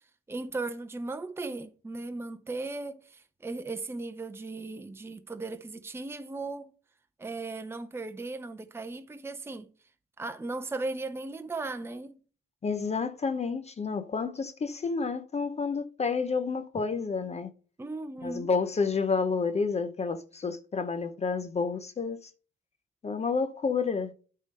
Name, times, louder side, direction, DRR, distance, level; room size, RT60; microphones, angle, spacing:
voice 1, 0.3-6.7 7.2-9.7 10.2-12.2 17.8-18.5, right 3 dB, 10° right, 0.7 m, -37 dB
voice 2, 12.6-17.5 18.2-22.3 23.0-24.1, left 5 dB, 35° left, 0.7 m, -30 dB
8.7 x 3.8 x 5.4 m
cardioid pair, 90°, 20 cm